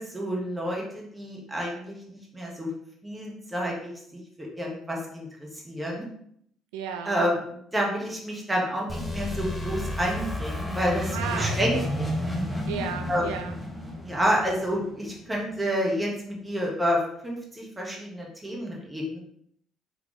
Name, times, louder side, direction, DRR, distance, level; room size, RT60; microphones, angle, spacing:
voice 1, 0.0-2.7 3.0-3.9 4.4-6.1 7.0-11.8 13.1-13.5 14.0-19.2, equal, 15° right, -2 dB, 1.5 m, -29 dB
voice 2, 6.7-7.2 11.1-11.9 12.7-13.5, right 7 dB, 80° right, 5 dB, 0.3 m, -33 dB
sound 1, 8.9-15.5, left 1 dB, 5° left, 1.1 m, -32 dB
3.9 x 3.4 x 3.2 m, 0.69 s
hypercardioid pair, 55°, 0 cm